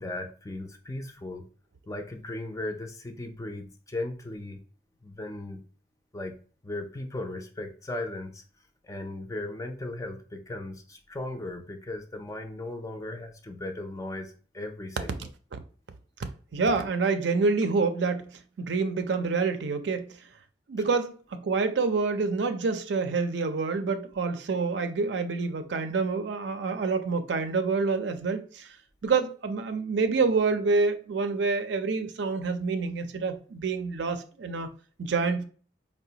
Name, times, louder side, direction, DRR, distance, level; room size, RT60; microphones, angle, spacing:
voice 1, 0.0-1.4 1.9-4.6 5.0-5.6 6.1-6.4 6.6-8.4 8.8-15.1, left 2 dB, 15° left, 0.4 m, -37 dB
voice 2, 16.5-20.2 20.7-28.7 29.0-34.7 35.0-35.4, right 4 dB, 70° right, 0.4 m, -27 dB
4.8 x 2.1 x 2.7 m
head